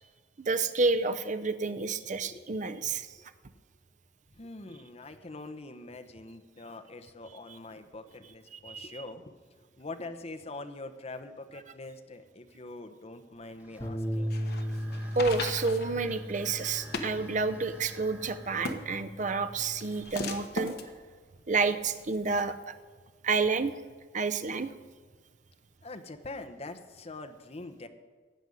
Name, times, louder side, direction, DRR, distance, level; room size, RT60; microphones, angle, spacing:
voice 1, 0.4-3.1 8.6-8.9 15.2-20.8 21.5-22.8 23.2-23.7 24.1-24.7, right 4 dB, 45° right, 10 dB, 0.7 m, -29 dB
voice 2, 4.3-14.3 25.8-27.9, left 2 dB, 35° left, 7 dB, 0.9 m, -44 dB
sound 1, 13.3-21.4 22.0-22.1 22.8-23.0 26.5-26.8, right 1 dB, 10° right, 2.0 m, -53 dB
Bass guitar, 13.8-20.0, equal, 15° left, 2.0 m, -37 dB
sound 2, 14.1-22.4, left 3 dB, 60° left, 1.2 m, -40 dB
16.0 x 5.3 x 9.8 m, 1.5 s
head